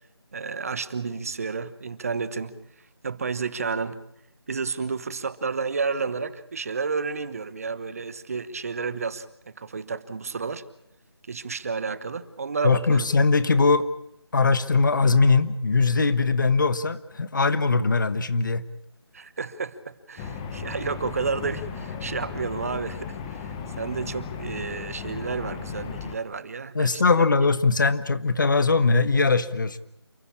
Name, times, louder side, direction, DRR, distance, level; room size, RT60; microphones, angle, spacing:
voice 1, 0.3-2.6 3.0-4.0 4.5-9.3 9.6-10.6 11.3-13.1 19.1-27.3, right 5 dB, 35° right, 15 dB, 1.1 m, -31 dB
voice 2, 12.6-13.9 14.3-18.6 26.7-29.8, left 4 dB, 45° left, 14 dB, 1.3 m, -21 dB
sound 1, 20.2-26.1, left 6 dB, 10° left, 1.0 m, -36 dB
28.5 x 14.5 x 8.6 m, 0.77 s
figure-of-eight pair, 160°, 14 cm